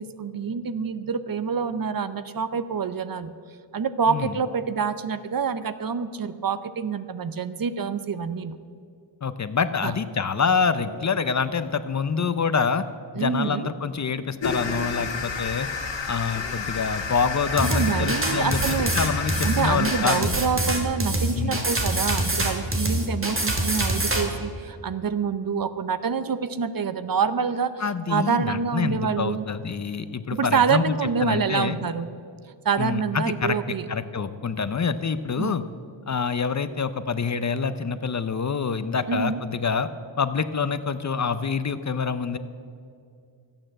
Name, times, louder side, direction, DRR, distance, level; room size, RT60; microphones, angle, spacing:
voice 1, 0.0-3.3 3.7-8.6 9.8-9.9 13.2-13.7 17.6-18.9 19.4-27.8 28.1-29.5 30.3-32.1 32.6-33.9 35.4-35.6 39.1-39.4, right 6 dB, 45° right, 13 dB, 0.7 m, -26 dB
voice 2, 9.2-12.8 13.1-15.7 16.0-20.3 21.3-21.6 27.8-31.8 32.8-33.6 33.9-35.6 36.1-39.9 40.2-42.4, left 5 dB, 40° left, 13 dB, 0.6 m, -26 dB
sound 1, 14.4-20.2, left 5 dB, 65° left, 1.8 m, -30 dB
sound 2, 17.6-24.2, right 1 dB, 25° right, 2.3 m, -25 dB
14.5 x 8.9 x 7.6 m, 2.3 s
wide cardioid pair, 105°, 46 cm